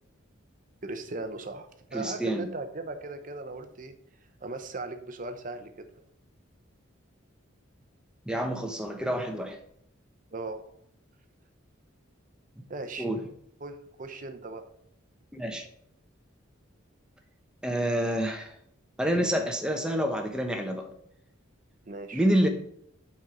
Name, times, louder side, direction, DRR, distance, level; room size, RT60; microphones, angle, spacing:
voice 1, 0.8-4.0 4.4-5.9 10.3-10.6 12.7-13.1 13.6-14.7 21.9-22.2, right 2 dB, 40° right, 8 dB, 0.7 m, -38 dB
voice 2, 1.9-2.5 8.3-9.6 12.6-12.7 13.0-13.2 15.3-15.7 17.6-18.5 19.0-20.9 22.1-22.5, right 1 dB, 5° right, 3 dB, 0.8 m, -28 dB
6.5 x 4.4 x 5.1 m, 0.69 s
head